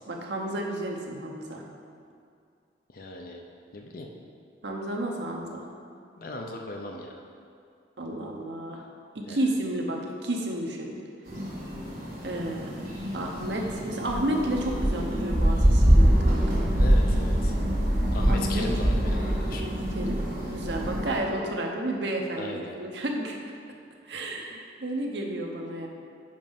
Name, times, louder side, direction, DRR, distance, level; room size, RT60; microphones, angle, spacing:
voice 1, 0.1-1.6 4.6-5.7 8.0-8.8 9.1-10.9 12.2-12.7 13.1-16.7 18.3-18.7 19.6-20.2 20.5-23.4 24.0-25.9, right 1 dB, 65° right, 0 dB, 0.8 m, -32 dB
voice 2, 2.9-3.4 3.7-4.1 6.2-7.1 9.3-9.4 16.8-17.5 18.1-19.7 22.4-22.7, left 2 dB, 50° left, 2 dB, 0.5 m, -37 dB
sound 1, 11.3-21.2, equal, 45° right, 1.8 m, -24 dB
5.3 x 5.3 x 5.3 m, 2.4 s
head